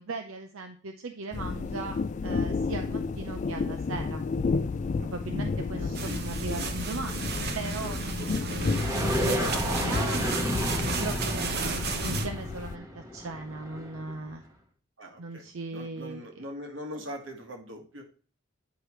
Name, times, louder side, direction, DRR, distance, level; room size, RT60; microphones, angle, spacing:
voice 1, 0.0-4.2 5.0-5.9 6.2-7.3 7.5-10.4 11.0-14.4 15.2-16.4, right 3 dB, 90° right, 5 dB, 0.6 m, -38 dB
sound 1, 1.3-12.8, left 4 dB, 35° left, 0.3 m, -32 dB
voice 2, 5.8-6.2 9.4-9.7 11.6-11.8 15.0-18.0, left 1 dB, 70° right, 4 dB, 1.5 m, -41 dB
sound 2, 5.9-12.3, right 4 dB, 50° right, 0.8 m, -33 dB
sound 3, 8.7-14.3, equal, 15° right, 1.0 m, -32 dB
9.3 x 4.9 x 3.1 m, 0.42 s
head